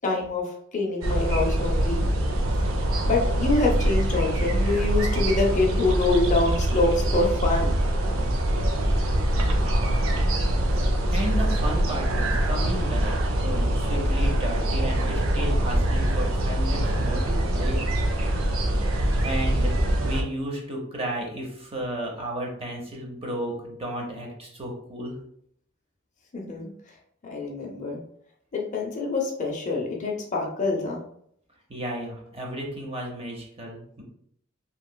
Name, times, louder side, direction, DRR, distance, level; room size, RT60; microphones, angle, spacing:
voice 1, 0.0-2.0 3.0-7.8 26.3-26.7 27.2-28.0 28.5-31.0, left 2 dB, 40° left, -1 dB, 0.6 m, -25 dB
sound 1, 1.0-20.2, right 1 dB, 75° right, 0.5 m, -24 dB
voice 2, 9.3-9.9 10.7-13.1 13.4-17.9 18.8-25.1 31.7-34.0, right 1 dB, 30° right, -1 dB, 0.7 m, -33 dB
3.0 x 2.8 x 2.2 m, 0.69 s
head